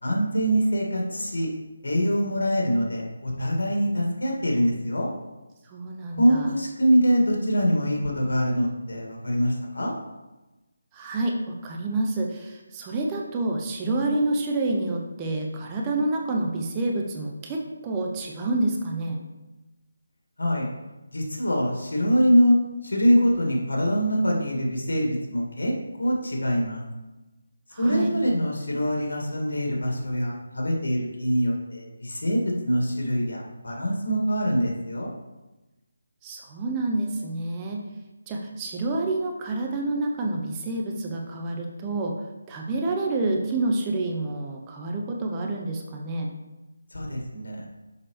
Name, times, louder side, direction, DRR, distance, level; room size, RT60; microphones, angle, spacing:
voice 1, 0.0-1.5 1.8-5.1 6.2-9.9 20.4-20.7 21.1-22.6 22.8-25.7 26.0-26.8 27.8-35.1 46.9-47.6, equal, 65° left, -1 dB, 2.0 m, -24 dB
voice 2, 5.6-6.5 10.9-19.2 27.7-28.1 36.2-37.8 38.3-42.2 42.5-46.3, right 2 dB, 20° right, 0 dB, 0.6 m, -28 dB
6.7 x 5.7 x 3.2 m, 1.1 s
figure-of-eight pair, 155°, 0 cm